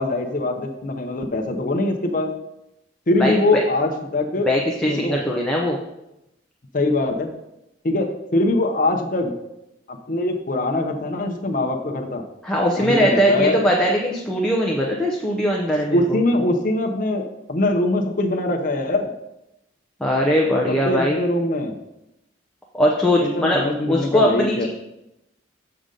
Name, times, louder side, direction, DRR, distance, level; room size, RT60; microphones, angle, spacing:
voice 1, 0.0-2.3 3.1-4.5 4.8-5.2 6.7-7.3 7.8-9.3 9.9-12.2 12.8-13.6 15.9-19.1 20.7-21.8 23.2-24.7, left 2 dB, 45° left, 2 dB, 0.7 m, -22 dB
voice 2, 3.2-3.6 4.4-5.8 12.4-16.2 20.0-21.2 22.7-23.6 23.9-24.7, equal, 5° left, -3 dB, 0.7 m, -20 dB
6.9 x 6.4 x 3.8 m, 0.88 s
head